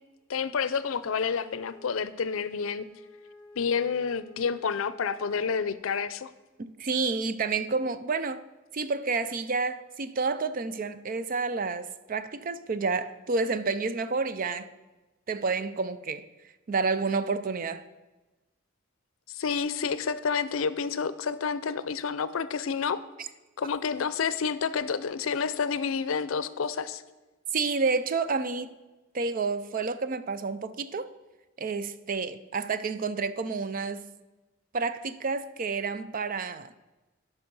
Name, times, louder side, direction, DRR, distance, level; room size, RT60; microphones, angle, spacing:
voice 1, 0.3-2.9 3.6-6.3 19.3-23.0 23.6-27.0, left 6 dB, 80° left, 0.5 m, -29 dB
Wind instrument woodwind instrument, 1.5-5.7, left 2 dB, 10° left, 2.3 m, -52 dB
voice 2, 6.6-8.4 8.7-14.7 15.3-16.2 16.7-17.8 27.5-28.7 29.1-31.1 31.6-34.1 34.7-36.7, right 4 dB, 40° right, 0.5 m, -29 dB
12.5 x 5.6 x 5.4 m
head